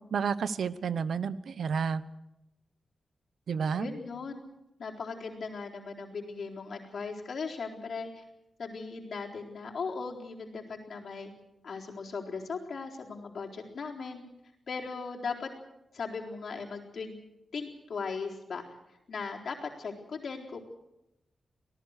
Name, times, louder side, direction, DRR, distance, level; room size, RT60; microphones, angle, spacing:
voice 1, 0.1-2.0 3.5-3.9, right 6 dB, 80° right, 15 dB, 0.9 m, -30 dB
voice 2, 3.7-4.5 4.8-8.2 8.6-11.3 11.6-14.2 14.7-15.5 15.9-17.2 17.5-18.6 19.1-20.6, left 4 dB, 65° left, -1 dB, 4.0 m, -38 dB
25.5 x 18.0 x 6.6 m, 0.91 s
wide cardioid pair, 155°, 0 cm